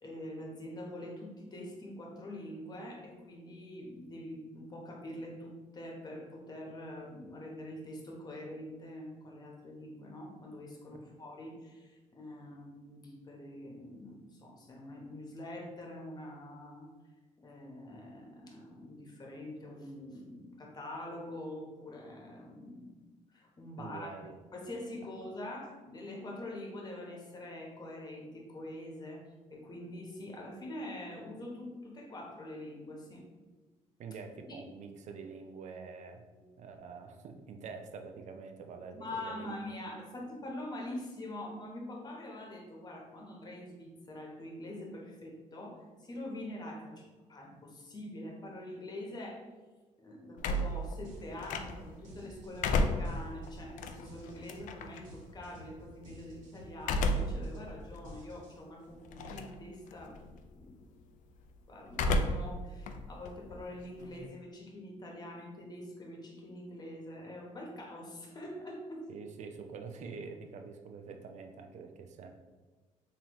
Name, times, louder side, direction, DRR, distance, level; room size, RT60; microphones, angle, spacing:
voice 1, 0.0-16.9 17.4-23.0 23.3-24.2 24.5-29.2 29.5-33.2 34.5-34.6 36.3-36.5 38.9-49.4 50.0-60.8 61.6-69.0, left 1 dB, 30° left, -1 dB, 1.0 m, -45 dB
voice 2, 23.8-24.4 34.0-36.2 36.6-39.6 69.1-72.3, right 5 dB, 60° right, 5 dB, 0.5 m, -46 dB
sound 1, 50.4-52.0 52.4-55.0 56.8-57.5 58.0-58.1 59.1-59.6 59.9-60.3 61.9-62.6 62.9-64.3, left 1 dB, 70° left, 0.4 m, -32 dB
sound 2, 50.5-50.7 51.0-58.8, right 1 dB, 75° right, 1.3 m, -53 dB
4.0 x 2.7 x 3.0 m, 1.3 s
cardioid pair, 80°, 14 cm